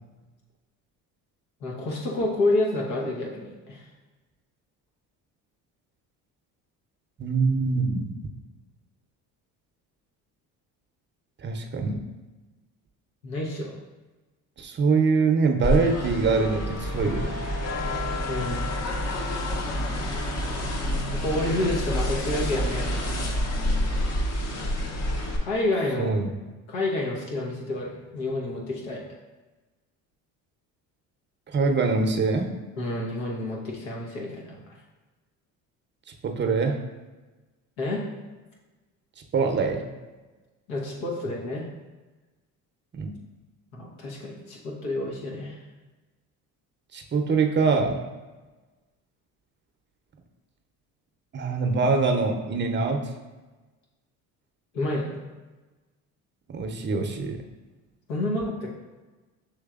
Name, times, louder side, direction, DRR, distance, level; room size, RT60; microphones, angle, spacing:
voice 1, 1.6-3.9 13.2-13.8 18.3-18.7 19.6-19.7 21.1-23.0 25.4-26.1 26.7-29.0 32.8-34.6 37.8-38.1 40.7-41.6 43.7-45.6 54.7-55.2 58.1-58.7, left 2 dB, 85° left, -2 dB, 1.1 m, -29 dB
voice 2, 7.2-8.1 11.4-12.0 14.6-17.5 26.0-26.3 31.5-32.5 36.2-36.8 39.3-39.8 42.9-43.1 46.9-48.0 51.3-53.0 56.5-57.4, right 4 dB, 25° right, 4 dB, 0.7 m, -24 dB
sound 1, 15.6-25.4, left 1 dB, 40° left, 0.8 m, -28 dB
6.5 x 3.1 x 2.4 m, 1.2 s
hypercardioid pair, 65°, 42 cm